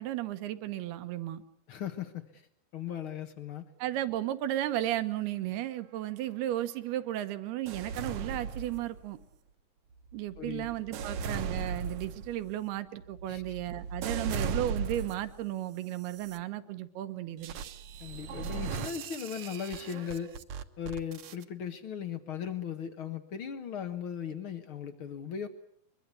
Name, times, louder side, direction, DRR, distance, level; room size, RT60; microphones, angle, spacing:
voice 1, 0.0-1.4 3.8-9.2 10.1-17.5, right 13 dB, 80° right, 11 dB, 3.2 m, -34 dB
voice 2, 1.7-2.4 2.7-3.7 10.4-10.7 13.3-13.4 18.0-20.3 20.8-25.5, left 8 dB, 75° left, 9 dB, 1.2 m, -38 dB
sound 1, 7.7-9.2 9.9-15.4 16.0-16.4 17.4-21.4, right 5 dB, 65° right, 1.9 m, -38 dB
23.5 x 23.0 x 8.3 m, 0.67 s
omnidirectional pair, 4.6 m